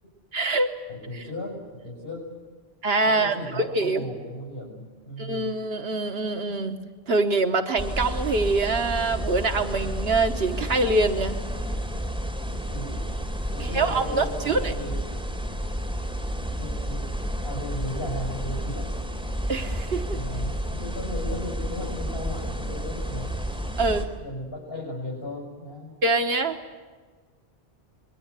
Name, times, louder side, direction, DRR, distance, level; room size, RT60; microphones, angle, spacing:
voice 1, 0.3-0.7 1.1-1.3 2.8-4.0 5.2-6.8 7.1-11.4 13.6-14.7 19.5-20.2 23.8-24.1 26.0-26.6, right 3 dB, 75° right, 5 dB, 1.4 m, -24 dB
voice 2, 0.9-2.3 3.0-5.5 12.5-13.0 13.5-15.2 16.6-17.0 17.4-18.9 20.1-23.3 24.2-25.9, left 1 dB, 75° left, -3 dB, 6.4 m, -36 dB
sound 1, 7.8-24.0, equal, 5° right, 3.3 m, -31 dB
26.5 x 22.5 x 8.2 m, 1.4 s
omnidirectional pair, 1.0 m